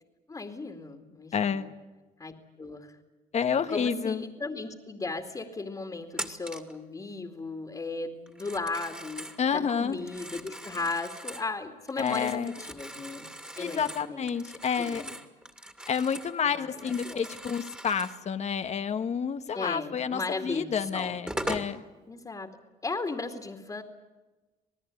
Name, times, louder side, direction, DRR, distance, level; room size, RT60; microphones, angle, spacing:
voice 1, 0.3-1.7 2.2-3.0 3.7-13.3 13.6-14.3 14.8-15.1 16.4-17.4 19.5-21.2 22.1-22.5 22.8-23.8, left 3 dB, 20° left, 3 dB, 2.4 m, -36 dB
voice 2, 1.3-1.7 3.3-4.2 9.4-10.0 12.0-12.5 13.6-15.1 15.9-21.8, left 7 dB, 40° left, 10 dB, 1.4 m, -29 dB
Telephone, 6.1-6.8 8.3-9.4 9.9-11.5 11.9-16.4 16.7-18.2 20.3-20.4 21.0-21.7, right 1 dB, 5° right, 2.5 m, -40 dB
27.0 x 19.0 x 9.7 m, 1.2 s
cardioid pair, 110°, 17 cm